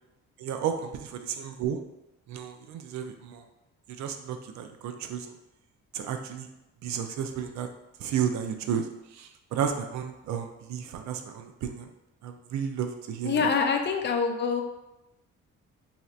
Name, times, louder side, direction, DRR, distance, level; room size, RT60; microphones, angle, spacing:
voice 1, 0.4-1.8 2.3-3.4 4.0-5.3 5.9-6.5 6.8-7.7 8.0-8.9 9.1-11.9 12.2-13.5, right 8 dB, 65° right, 6 dB, 0.4 m, -32 dB
voice 2, 13.2-14.6, left 5 dB, 35° left, 4 dB, 0.4 m, -25 dB
3.2 x 2.7 x 2.4 m, 0.93 s
cardioid pair, 90°, 30 cm